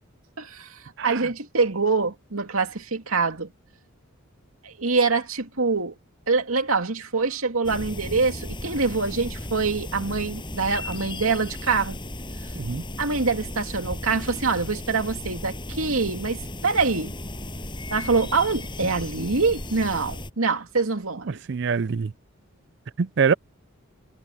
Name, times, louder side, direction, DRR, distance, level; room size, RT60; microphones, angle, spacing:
voice 1, 0.4-0.7 1.0-3.5 4.6-5.9 6.3-12.0 13.0-16.4 16.6-17.1 17.9-21.4, right 4 dB, 80° right, 2.5 m, -25 dB
sound 1, 7.6-20.3, left 1 dB, 20° left, 7.7 m, -35 dB
voice 2, 21.5-22.1 23.0-23.3, right 5 dB, 55° right, 0.4 m, -23 dB
head